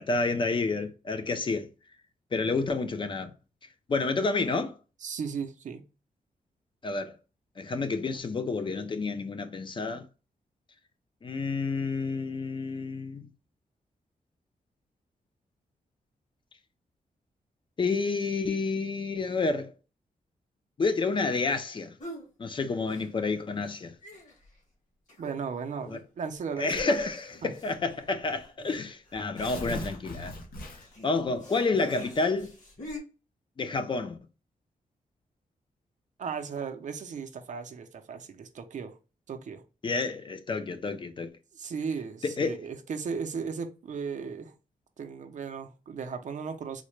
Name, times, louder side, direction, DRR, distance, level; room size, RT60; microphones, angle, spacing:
voice 1, 0.0-1.7 2.3-3.3 3.9-4.8 6.8-7.2 7.6-10.1 11.2-13.3 17.8-19.7 20.8-21.9 22.4-23.9 25.8-26.0 26.6-30.4 31.0-32.5 33.6-34.2 39.8-41.3 42.2-42.6, left 3 dB, 35° left, 0.4 m, -29 dB
voice 2, 5.0-5.8 25.2-26.9 27.4-27.5 36.2-38.9 39.3-39.6 41.5-44.5 45.0-46.8, right 6 dB, 55° right, 0.5 m, -36 dB
sound 1, 22.0-22.3 22.9-23.4 23.7-23.8 24.0-24.6 25.1-25.6 25.9-26.0 26.9-33.0, left 1 dB, 55° left, 1.5 m, -46 dB
Tearing, 26.7-27.1 28.0-28.1 28.4-28.5 29.1-31.1, left 1 dB, 75° left, 0.9 m, -39 dB
3.8 x 2.1 x 3.1 m
wide cardioid pair, 135°, 15 cm